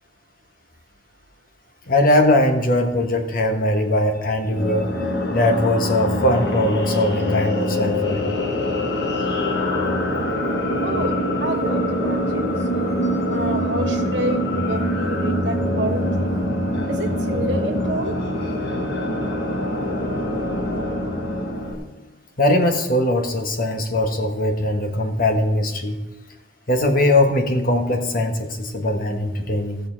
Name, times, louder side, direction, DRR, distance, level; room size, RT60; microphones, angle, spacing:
voice 1, 1.9-4.9 5.3-8.3 22.4-26.0 26.7-29.8, left 1 dB, 50° left, 5 dB, 1.3 m, -20 dB
sound 1, 4.5-21.7, left 1 dB, 65° left, 1.7 m, -24 dB
voice 2, 10.8-12.5 13.3-16.4 16.9-18.2, right 1 dB, 75° right, 4 dB, 1.3 m, -29 dB
16.0 x 6.7 x 4.5 m, 1.1 s
head